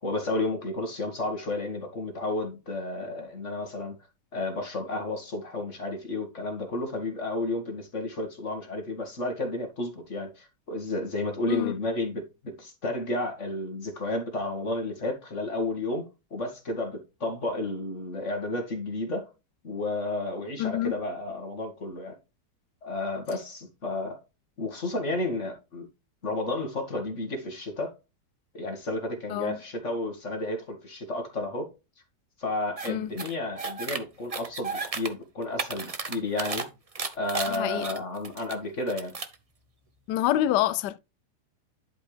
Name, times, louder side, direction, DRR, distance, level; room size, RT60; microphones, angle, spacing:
voice 1, 0.0-4.0 4.3-16.0 16.3-19.3 19.6-22.2 22.8-24.2 24.6-25.9 26.2-27.9 28.5-31.7 32.4-36.7 37.1-39.1, left 2 dB, 45° left, 2.2 m, -32 dB
voice 2, 20.6-21.0 29.3-29.6 32.9-33.1 37.5-37.9 40.1-41.0, left 13 dB, 75° left, 1.2 m, -27 dB
sound 1, 32.8-32.9 33.2-34.0 34.3-35.1 35.4-36.6 36.9-38.5 38.9-39.3, right 4 dB, 30° right, 0.6 m, -33 dB
11.5 x 5.2 x 3.3 m
omnidirectional pair, 1.9 m